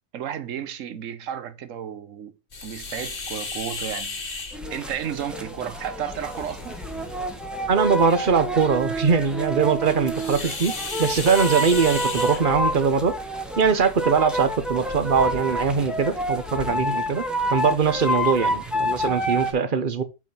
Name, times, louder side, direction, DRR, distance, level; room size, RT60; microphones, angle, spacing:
voice 1, 0.1-4.4 4.7-6.8, right 9 dB, 70° right, 1.2 m, -33 dB
sound 1, 2.5-16.7, left 4 dB, 40° left, 1.5 m, -37 dB
sound 2, 4.5-19.5, right 1 dB, ahead, 1.1 m, -28 dB
voice 2, 7.7-10.7 11.0-13.1 13.5-17.2 17.5-20.0, right 5 dB, 40° right, 1.0 m, -21 dB
8.6 x 4.3 x 5.3 m
omnidirectional pair, 1.5 m